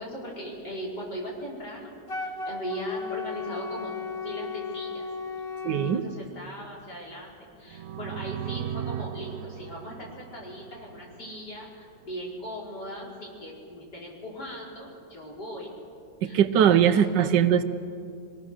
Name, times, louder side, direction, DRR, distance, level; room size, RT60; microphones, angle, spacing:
voice 1, 0.0-5.1 5.8-15.7 16.2-17.4, equal, 70° left, -4 dB, 5.3 m, -39 dB
Wind instrument woodwind instrument, 2.1-6.0, left 4 dB, 35° left, 1.9 m, -35 dB
voice 2, 5.6-6.0 16.2-17.6, right 9 dB, 80° right, 12 dB, 1.5 m, -21 dB
sound 1, 7.7-11.4, right 9 dB, 65° right, 0.9 m, -37 dB
24.5 x 18.0 x 6.6 m, 2.5 s
omnidirectional pair, 1.9 m